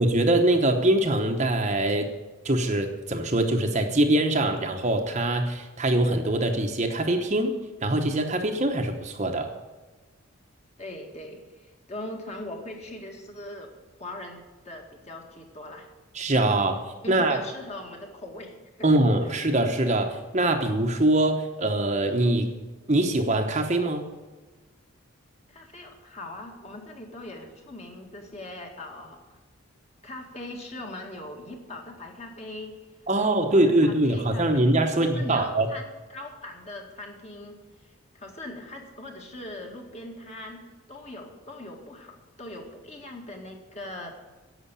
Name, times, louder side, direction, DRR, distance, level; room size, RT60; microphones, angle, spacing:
voice 1, 0.0-2.1 2.4-9.5 16.1-16.8 17.1-17.4 18.8-22.5 22.9-24.1 33.1-35.7, right 1 dB, 30° right, 5 dB, 1.0 m, -23 dB
voice 2, 10.8-13.7 13.9-15.9 17.0-18.9 19.5-19.6 25.5-29.4 30.0-32.8 33.2-37.6 38.1-44.2, left 1 dB, 30° left, 2 dB, 2.1 m, -41 dB
11.0 x 7.9 x 9.9 m, 1.2 s
head